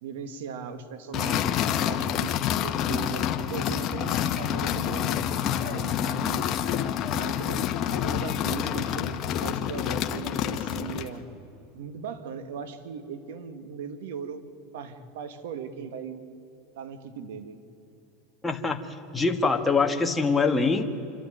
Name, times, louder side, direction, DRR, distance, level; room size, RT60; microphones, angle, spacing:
voice 1, 0.0-5.2 5.6-6.5 7.1-11.2 11.7-16.2 16.7-17.6, right 6 dB, 80° right, 10 dB, 1.6 m, -38 dB
sound 1, 1.1-11.2, left 10 dB, 40° left, 1.3 m, -28 dB
voice 2, 18.4-18.8 19.1-20.8, left 4 dB, 10° left, 3 dB, 1.6 m, -23 dB
27.0 x 13.0 x 9.2 m, 3.0 s
supercardioid pair, 125°, 0 cm